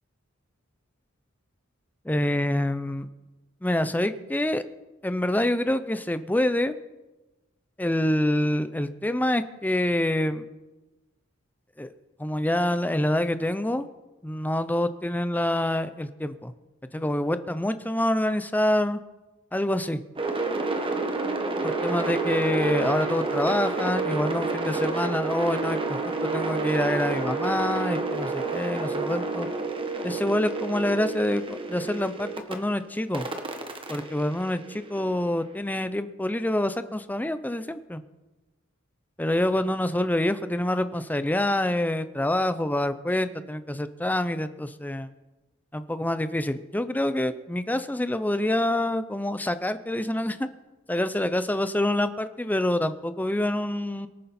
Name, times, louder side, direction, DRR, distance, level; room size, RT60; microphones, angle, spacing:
voice 1, 2.0-3.1 3.6-4.6 5.0-6.7 7.8-10.4 11.8-11.9 12.2-13.9 14.2-16.5 16.9-19.0 19.5-20.0 21.6-29.5 30.0-31.4 31.7-33.3 33.9-38.0 39.2-45.1 45.7-50.5 50.9-54.1, left 1 dB, 10° left, 11 dB, 0.6 m, -26 dB
sound 1, 20.2-32.5 33.1-35.3, right 3 dB, 25° right, 1.4 m, -29 dB
24.0 x 9.8 x 4.3 m, 1.1 s
head